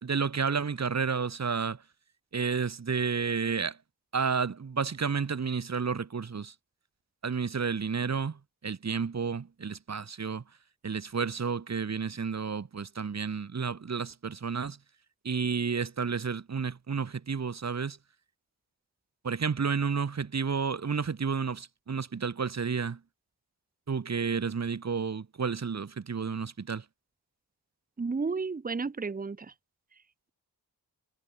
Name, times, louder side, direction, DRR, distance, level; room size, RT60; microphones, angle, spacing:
voice 1, 0.0-1.8 2.3-3.8 4.1-6.5 7.2-10.4 10.8-14.8 15.2-18.0 19.2-23.0 23.9-26.8, right 5 dB, 40° right, 1.1 m, -31 dB
voice 2, 28.0-29.5, right 4 dB, 20° right, 0.8 m, -32 dB
wide cardioid pair, 90°, 42 cm